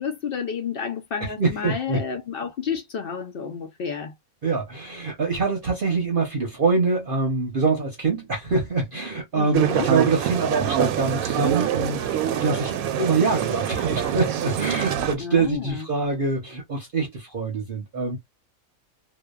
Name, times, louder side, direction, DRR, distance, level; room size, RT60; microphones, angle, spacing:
voice 1, 0.0-4.1 9.3-9.9 15.2-15.9, left 6 dB, 65° left, 0.5 m, -30 dB
voice 2, 1.4-2.0 4.4-18.2, right 4 dB, 45° right, 0.8 m, -25 dB
sound 1, 9.5-15.1, right 10 dB, 75° right, 1.0 m, -25 dB
2.7 x 2.2 x 2.2 m
omnidirectional pair, 1.5 m